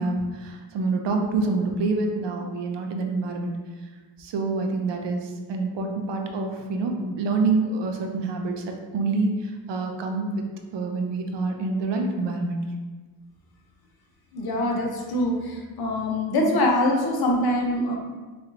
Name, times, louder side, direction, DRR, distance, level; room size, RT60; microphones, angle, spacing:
voice 1, 0.0-3.5 4.2-8.6 8.9-10.3 10.7-12.6, right 3 dB, 75° right, 3 dB, 0.6 m, -26 dB
voice 2, 14.3-17.9, left 1 dB, 55° left, 0 dB, 0.7 m, -24 dB
4.2 x 3.1 x 2.5 m, 1.3 s
wide cardioid pair, 170°, 43 cm